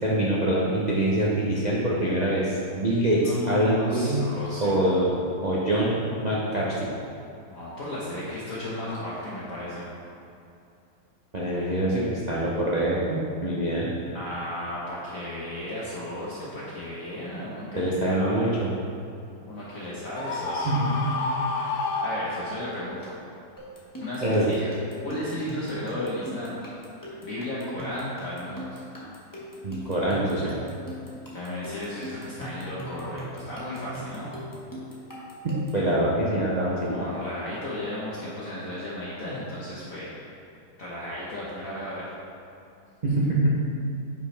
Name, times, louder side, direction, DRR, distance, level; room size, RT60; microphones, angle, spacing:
voice 1, 0.0-4.3 4.6-5.1 5.4-6.9 11.3-13.9 17.7-18.5 20.6-21.1 24.2-24.5 29.6-30.5 35.4-37.0 43.0-43.7, right 1 dB, 90° right, -6 dB, 0.3 m, -24 dB
voice 2, 3.2-4.8 7.5-9.9 14.1-18.5 19.4-20.7 22.0-23.1 24.0-24.7 25.0-26.6 27.2-28.8 31.3-34.3 36.8-40.1 40.8-42.0, left 1 dB, 50° left, -8 dB, 1.3 m, -34 dB
Screaming, 20.1-22.8, left 3 dB, 80° left, 0.6 m, -29 dB
sound 1, 23.6-35.9, left 1 dB, 15° left, 0.8 m, -40 dB
9.3 x 5.5 x 3.3 m, 2.7 s
omnidirectional pair, 2.2 m